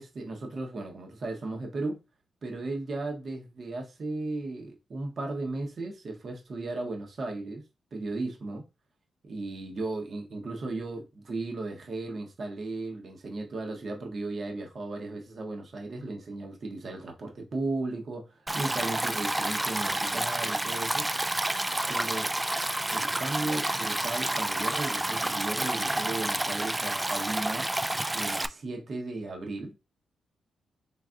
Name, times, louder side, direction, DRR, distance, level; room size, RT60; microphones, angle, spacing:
voice 1, 0.0-2.0 2.4-8.7 9.2-21.1 21.9-22.3 22.9-27.7 28.1-29.8, right 2 dB, 55° right, 1.0 m, -36 dB
Stream, 18.5-28.5, right 1 dB, 15° right, 0.3 m, -29 dB
4.0 x 3.3 x 2.5 m
cardioid pair, 70°, 0 cm